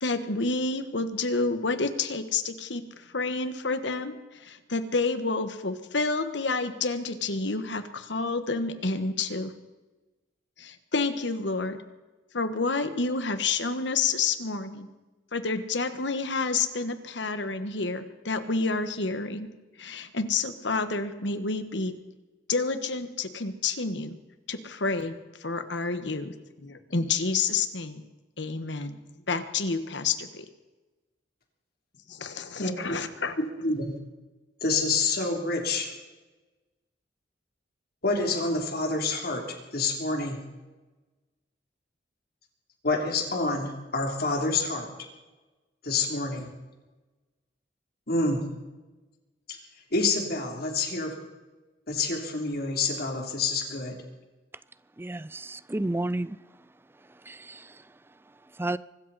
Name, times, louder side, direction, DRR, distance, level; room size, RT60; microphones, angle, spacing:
voice 1, 0.0-9.5 10.6-11.8 12.3-14.9 15.3-19.5 19.8-21.9 22.5-24.2 24.5-28.0 28.4-29.0 29.3-30.5 32.1-33.3, left 4 dB, 75° left, 1.4 m, -29 dB
voice 2, 33.6-33.9 34.6-35.9 38.0-40.4 42.8-44.9 45.8-46.5 48.1-48.4 49.5-49.6 49.9-51.1 51.9-54.0, left 3 dB, 55° left, 3.4 m, -27 dB
voice 3, 55.0-56.4 57.3-57.8 58.6-58.8, right 1 dB, 10° right, 0.4 m, -31 dB
24.0 x 13.5 x 4.2 m
head